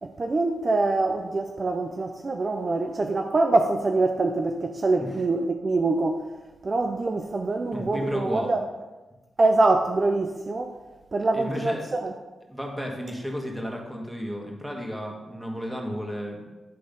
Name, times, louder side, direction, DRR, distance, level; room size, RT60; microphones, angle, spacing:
voice 1, 0.0-6.3 6.6-8.6 9.4-10.7 11.1-12.1, right 2 dB, 45° right, 0.6 m, -24 dB
voice 2, 7.7-8.5 11.3-11.8 12.5-16.5, equal, 5° right, 2.0 m, -33 dB
10.0 x 3.8 x 5.3 m
supercardioid pair, 50°, 0 cm